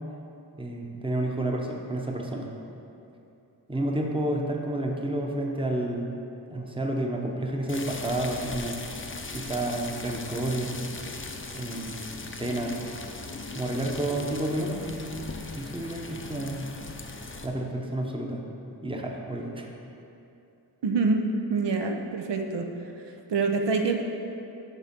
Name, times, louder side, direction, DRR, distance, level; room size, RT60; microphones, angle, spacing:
voice 1, 0.5-2.5 3.7-6.2 6.5-8.8 9.3-10.8 11.5-12.8 13.5-15.3 15.6-16.7 17.4-18.4 18.8-19.7, right 1 dB, 10° right, 0 dB, 0.9 m, -30 dB
sound 1, 7.7-17.5, left 3 dB, 30° left, 0.6 m, -39 dB
voice 2, 20.8-22.7 23.3-24.0, right 4 dB, 70° right, 3 dB, 0.7 m, -26 dB
11.0 x 3.7 x 5.9 m, 2.8 s
wide cardioid pair, 95°, 44 cm